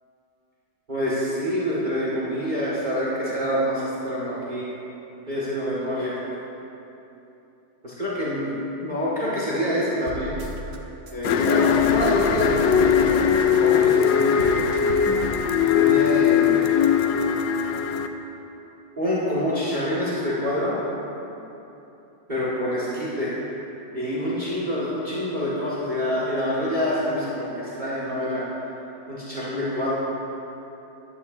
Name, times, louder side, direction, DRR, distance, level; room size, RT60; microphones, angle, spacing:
voice 1, 0.9-4.7 5.3-6.2 7.8-8.5 8.8-10.4 11.1-14.6 15.7-16.8 19.0-20.8 22.3-23.3 23.9-28.4 29.1-29.9, equal, 25° right, -8 dB, 2.0 m, -26 dB
sound 1, 10.1-10.8 11.1-13.4 13.7-15.4, right 1 dB, 45° right, 1.0 m, -36 dB
sound 2, 11.2-18.1, left 8 dB, 85° left, 1.3 m, -20 dB
15.0 x 11.0 x 2.7 m, 3.0 s
omnidirectional pair, 2.0 m